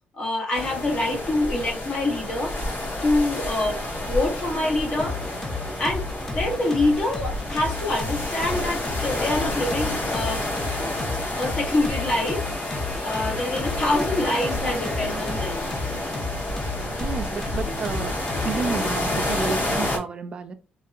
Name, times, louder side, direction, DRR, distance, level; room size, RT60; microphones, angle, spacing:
voice 1, 0.1-2.5 3.0-5.2 5.8-10.4 11.3-12.4 13.0-15.7, left 2 dB, 40° left, 1.0 m, -26 dB
sound 1, 0.5-20.0, left 1 dB, 90° left, 1.5 m, -29 dB
sound 2, 5.0-18.7, left 3 dB, 15° left, 0.5 m, -33 dB
voice 2, 17.0-18.1 18.4-20.5, right 5 dB, 35° right, 0.4 m, -30 dB
3.0 x 2.7 x 2.4 m
cardioid pair, 150°, 3 cm